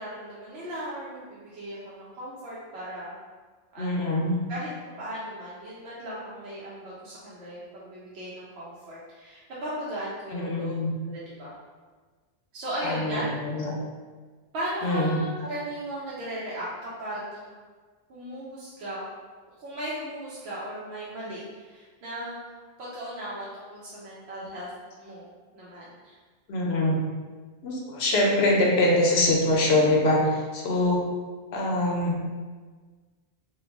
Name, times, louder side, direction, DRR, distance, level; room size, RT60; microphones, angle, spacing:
voice 1, 0.0-3.1 3.7-4.1 4.5-4.7 5.0-10.8 11.0-11.5 12.5-13.2 14.5-17.5 18.1-19.0 19.6-22.5 22.8-24.7 25.0-25.3 25.5-26.2 30.7-30.8, right 1 dB, 85° right, -8 dB, 0.9 m, -37 dB
voice 2, 3.8-4.5 10.3-10.9 12.8-13.7 14.8-15.2 26.5-27.0 27.6-31.1 31.5-32.3, left 1 dB, 85° left, 0 dB, 0.9 m, -24 dB
3.1 x 2.1 x 3.4 m, 1.4 s
omnidirectional pair, 1.0 m